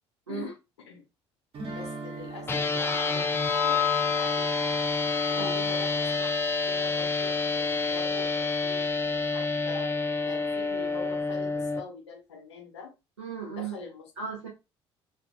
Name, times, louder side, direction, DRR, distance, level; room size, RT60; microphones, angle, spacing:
voice 1, 0.3-1.1 1.7-4.7 5.3-6.3 6.7-9.9 10.3-12.9 13.6-14.1, left 5 dB, 80° left, 3 dB, 0.7 m, -43 dB
sound 1, 1.5-6.5, right 3 dB, 40° right, 0.9 m, -43 dB
sound 2, 2.5-11.8, left 4 dB, 15° left, 0.4 m, -28 dB
sound 3, 2.8-6.9 7.2-7.5, left 8 dB, 10° right, 0.8 m, -33 dB
voice 2, 13.2-13.8 14.2-14.5, right 6 dB, 85° right, -2 dB, 0.5 m, -36 dB
2.4 x 2.3 x 2.6 m, 0.26 s
figure-of-eight pair, 55°, 14 cm